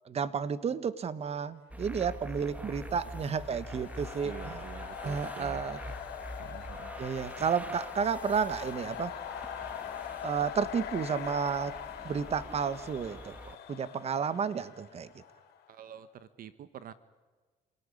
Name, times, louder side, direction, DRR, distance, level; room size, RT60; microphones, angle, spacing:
voice 1, 0.0-4.6 5.0-5.8 7.0-9.1 10.2-11.7 12.0-15.1, right 6 dB, 40° right, 14 dB, 1.3 m, -32 dB
sound 1, 1.7-13.6, equal, 10° right, 1.6 m, -45 dB
sound 2, 1.9-15.7, left 10 dB, 80° left, 5.3 m, -43 dB
voice 2, 4.2-5.7 6.4-6.9 15.7-16.9, right 9 dB, 60° right, 13 dB, 1.1 m, -47 dB
28.0 x 18.5 x 9.9 m, 1.4 s
cardioid pair, 110°, 17 cm